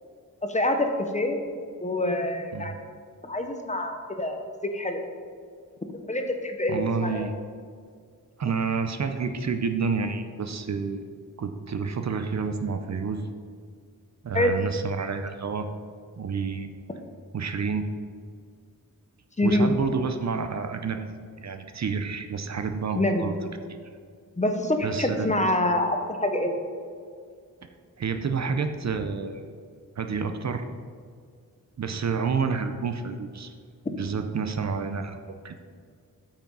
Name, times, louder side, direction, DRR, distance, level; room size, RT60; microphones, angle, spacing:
voice 1, 0.4-1.4 1.8-2.7 3.2-5.0 6.1-7.3 14.3-14.5 19.4-19.7 22.9-23.3 24.4-26.6, left 1 dB, 20° left, 4 dB, 0.7 m, -26 dB
voice 2, 6.7-7.3 8.4-11.0 11.4-13.3 14.2-15.7 16.2-16.7 17.3-17.9 19.4-21.1 21.4-23.3 24.8-25.4 28.0-29.5 30.0-30.6 31.8-33.5 34.0-35.5, right 5 dB, 50° right, 7 dB, 0.6 m, -29 dB
8.8 x 5.9 x 5.3 m, 2.1 s
wide cardioid pair, 165°, 35 cm